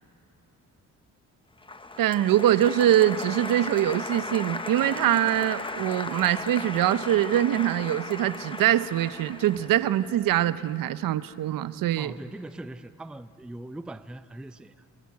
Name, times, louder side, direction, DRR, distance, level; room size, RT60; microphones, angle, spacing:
Applause, 1.6-10.7, left 2 dB, 15° left, 0.9 m, -36 dB
voice 1, 2.0-12.1, right 12 dB, 80° right, 15 dB, 0.7 m, -23 dB
voice 2, 12.0-14.8, right 1 dB, 5° right, 12 dB, 0.4 m, -41 dB
26.0 x 15.0 x 9.5 m, 2.9 s
cardioid pair, 95°, 33 cm